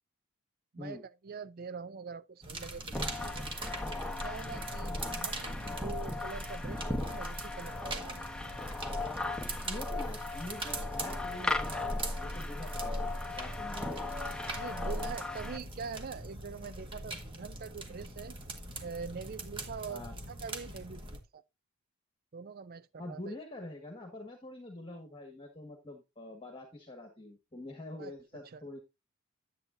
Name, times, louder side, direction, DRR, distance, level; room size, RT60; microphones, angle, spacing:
voice 1, 1.2-3.5 4.2-8.2 14.6-18.3 18.8-21.0 21.3-21.4 22.3-23.3 28.0-28.1 28.5-28.6, right 5 dB, 40° right, 0.4 m, -44 dB
sound 1, 2.4-21.2, right 2 dB, 25° right, 1.5 m, -43 dB
sound 2, 2.9-15.6, left 2 dB, 5° left, 1.0 m, -37 dB
voice 2, 9.6-13.1 13.3-13.9 14.2-14.5 19.9-20.1 23.0-28.8, left 1 dB, 25° left, 1.6 m, -45 dB
11.0 x 8.3 x 2.6 m
head